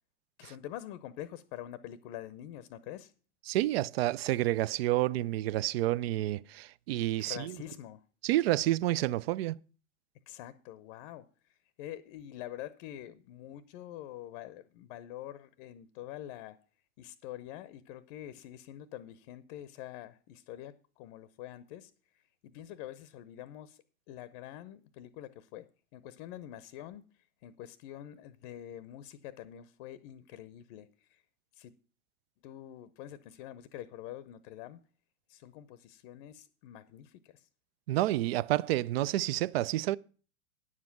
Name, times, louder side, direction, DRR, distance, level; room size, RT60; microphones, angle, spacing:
voice 1, 0.4-3.1 7.2-8.0 10.3-16.6 17.0-31.2 31.5-31.7 32.4-34.8 35.3-37.5, left 12 dB, 40° left, 0.7 m, -46 dB
voice 2, 3.5-7.5 8.2-9.6 37.9-40.0, right 15 dB, 45° right, 0.4 m, -29 dB
9.6 x 7.4 x 5.8 m
hypercardioid pair, 115°, 43 cm